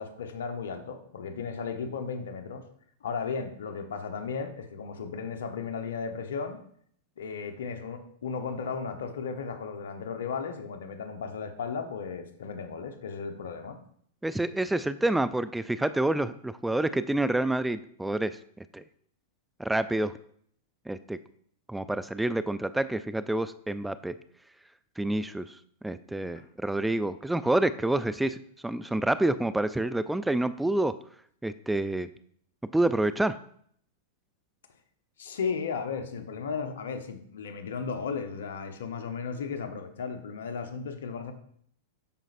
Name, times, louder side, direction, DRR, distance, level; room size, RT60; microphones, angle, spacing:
voice 1, 0.0-2.6 3.0-6.6 7.2-13.8 26.3-26.5 35.2-41.3, left 5 dB, 75° left, 8 dB, 0.9 m, -35 dB
voice 2, 14.2-18.4 18.7-18.8 19.6-20.2 20.9-21.2 21.7-24.1 25.0-25.6 25.8-30.9 31.4-32.1 32.7-33.4, right 1 dB, 5° right, 14 dB, 0.3 m, -28 dB
12.5 x 5.1 x 2.5 m, 0.63 s
hypercardioid pair, 105°, 0 cm